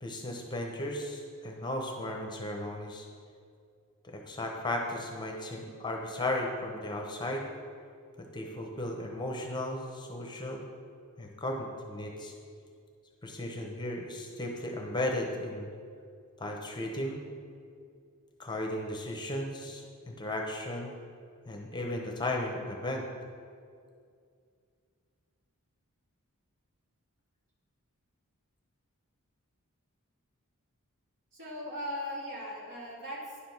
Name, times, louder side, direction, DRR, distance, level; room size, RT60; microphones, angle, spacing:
voice 1, 0.0-3.1 4.0-7.5 8.2-10.6 11.2-12.3 13.2-15.7 16.4-17.2 18.4-20.9 21.5-23.1, left 1 dB, 20° left, 1 dB, 0.9 m, -35 dB
voice 2, 31.3-33.4, equal, 60° right, -4 dB, 2.4 m, -38 dB
10.0 x 5.1 x 5.9 m, 2.3 s
head